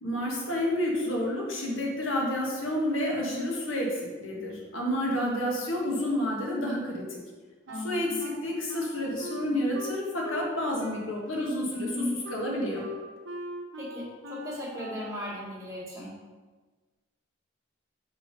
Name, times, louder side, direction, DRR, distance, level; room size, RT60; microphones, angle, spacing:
voice 1, 0.0-7.2 7.8-12.8, left 1 dB, 85° left, -2 dB, 1.4 m, -30 dB
voice 2, 1.6-2.0 3.2-3.5 5.1-5.4 7.7-8.2 9.7-9.8 11.7-12.1 13.8-16.2, left 1 dB, 15° right, -7 dB, 2.0 m, -36 dB
Wind instrument woodwind instrument, 7.7-10.5 10.8-15.3, equal, 65° right, 0.8 m, -41 dB
6.1 x 3.7 x 5.1 m, 1.3 s
head